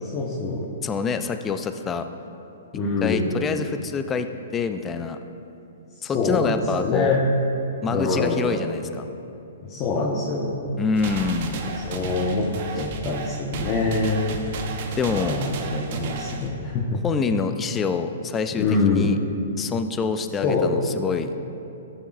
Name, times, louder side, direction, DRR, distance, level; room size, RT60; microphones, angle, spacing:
voice 1, 0.0-0.7 2.7-3.4 6.0-7.2 7.9-8.6 9.6-10.7 11.8-12.5 12.7-14.2 15.1-17.0 18.5-19.1 20.4-20.7, left 3 dB, 35° left, -3 dB, 1.1 m, -25 dB
voice 2, 0.8-2.1 3.0-5.2 6.0-7.1 7.8-9.0 10.8-11.6 15.0-15.4 17.0-19.2 19.6-21.3, left 5 dB, 20° left, 8 dB, 0.5 m, -26 dB
sound 1, 10.9-16.5, right 3 dB, 50° right, 0.8 m, -33 dB
15.5 x 7.0 x 2.5 m, 2.9 s
hypercardioid pair, 125°, 0 cm